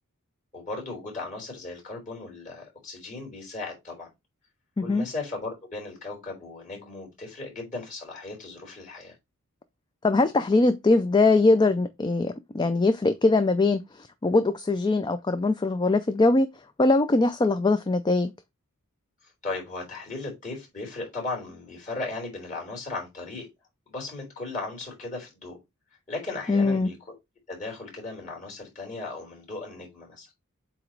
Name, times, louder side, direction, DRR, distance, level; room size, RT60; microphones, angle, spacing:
voice 1, 0.5-4.1 4.8-9.1 19.4-23.5 23.9-25.6 26.1-27.1 27.5-30.3, left 3 dB, 35° left, 3.6 m, -36 dB
voice 2, 10.0-13.8 14.2-16.5 16.8-18.3 26.5-26.9, left 3 dB, 20° left, 0.4 m, -22 dB
7.8 x 3.0 x 4.6 m
head